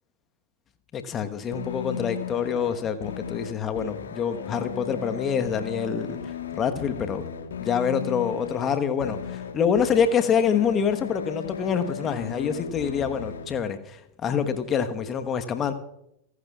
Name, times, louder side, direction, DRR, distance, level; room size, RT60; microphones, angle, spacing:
voice 1, 0.9-7.2 7.6-15.7, left 7 dB, 25° left, 8 dB, 1.3 m, -26 dB
sound 1, 1.5-13.5, left 8 dB, 65° left, 1.4 m, -36 dB
29.0 x 11.5 x 2.4 m, 0.79 s
figure-of-eight pair, 90°, 0 cm